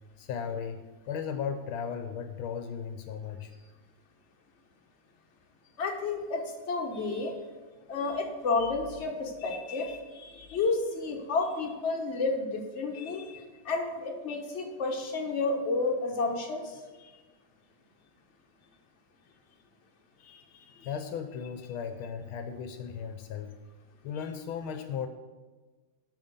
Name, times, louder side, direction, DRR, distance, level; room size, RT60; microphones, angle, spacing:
voice 1, 0.2-3.5 17.0-17.2 20.2-23.5 24.0-25.1, left 7 dB, 75° left, 7 dB, 1.5 m, -36 dB
voice 2, 5.8-7.3 7.9-16.8, left 3 dB, 40° left, 1 dB, 1.4 m, -31 dB
9.0 x 5.7 x 6.7 m, 1.3 s
omnidirectional pair, 2.3 m